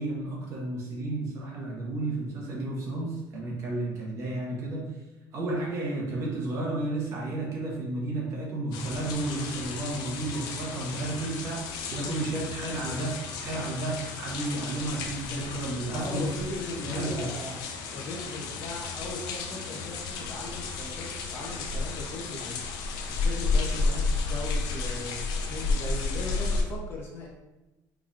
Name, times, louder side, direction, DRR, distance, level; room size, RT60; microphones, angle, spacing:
voice 1, 0.0-4.9 5.3-16.3 16.8-17.3, right 2 dB, 40° right, -3 dB, 1.2 m, -32 dB
sound 1, 8.7-26.6, left 4 dB, 70° left, 0.6 m, -32 dB
voice 2, 15.9-17.6 17.9-27.3, left 2 dB, 35° left, -2 dB, 0.8 m, -38 dB
4.5 x 4.0 x 2.4 m, 1.0 s
cardioid pair, 175°, 7 cm